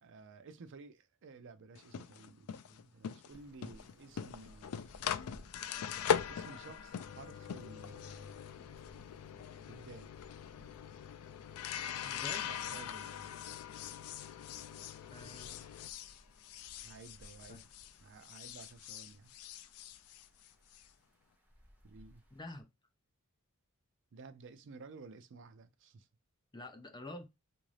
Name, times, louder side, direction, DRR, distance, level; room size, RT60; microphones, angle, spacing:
voice 1, 0.0-4.9 6.2-8.4 9.7-10.1 12.4-13.3 16.8-17.7 18.0-19.3 21.8-22.2 24.1-26.1, right 4 dB, 55° right, 0.5 m, -54 dB
sound 1, 1.8-18.0 18.2-20.8, left 8 dB, 70° left, 0.3 m, -41 dB
sound 2, 3.3-22.6, equal, 10° right, 0.8 m, -63 dB
voice 2, 12.0-12.5 15.1-15.7 17.5-17.6 22.3-22.7 26.5-27.3, left 2 dB, 20° left, 0.6 m, -47 dB
3.7 x 2.6 x 3.2 m
head